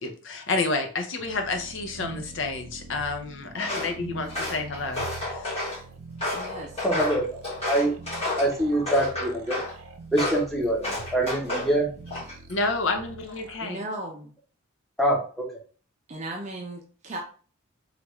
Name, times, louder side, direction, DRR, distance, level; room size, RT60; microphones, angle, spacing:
voice 1, 0.0-5.4 12.5-13.8, left 3 dB, 60° left, 5 dB, 0.6 m, -29 dB
sound 1, 1.2-13.7, right 4 dB, 90° right, 0.5 m, -44 dB
Walk footsteps, 3.6-3.9 4.3-5.8 6.2-8.5 8.9-9.7 10.1-10.5 10.8-11.7 12.1-12.5, left 2 dB, 30° left, 1.7 m, -31 dB
voice 2, 6.3-6.8 13.6-14.3 16.1-17.2, right 1 dB, 35° right, 0 dB, 0.5 m, -36 dB
voice 3, 6.8-7.3 7.6-7.9 8.4-9.6 10.1-11.9 15.0-15.5, right 1 dB, ahead, -3 dB, 0.8 m, -24 dB
3.3 x 2.4 x 3.1 m, 0.40 s
head